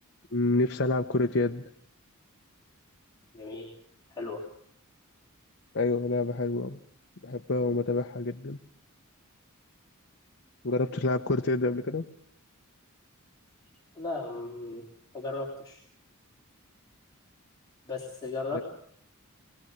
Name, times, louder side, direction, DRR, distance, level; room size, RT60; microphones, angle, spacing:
voice 1, 0.3-1.6 5.7-6.8 7.2-8.6 10.6-12.0 18.5-18.6, left 2 dB, 55° left, 3 dB, 0.9 m, -27 dB
voice 2, 3.3-3.7 4.2-4.4 14.0-14.8 15.1-15.8 17.9-18.6, left 3 dB, 20° left, -4 dB, 3.6 m, -35 dB
25.0 x 18.5 x 8.1 m, 0.65 s
head